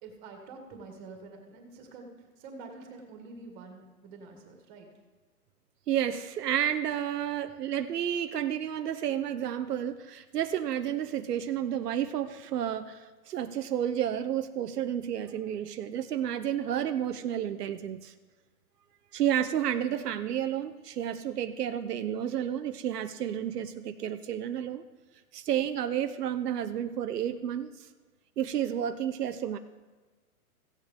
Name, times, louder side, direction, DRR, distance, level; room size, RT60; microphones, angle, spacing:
voice 1, 0.0-4.9, right 3 dB, 30° right, 3 dB, 1.7 m, -47 dB
voice 2, 5.9-18.1 19.1-24.8 25.3-27.9 28.4-29.6, right 10 dB, 90° right, 9 dB, 0.7 m, -31 dB
15.5 x 8.1 x 3.5 m, 1.3 s
hypercardioid pair, 150°, 46 cm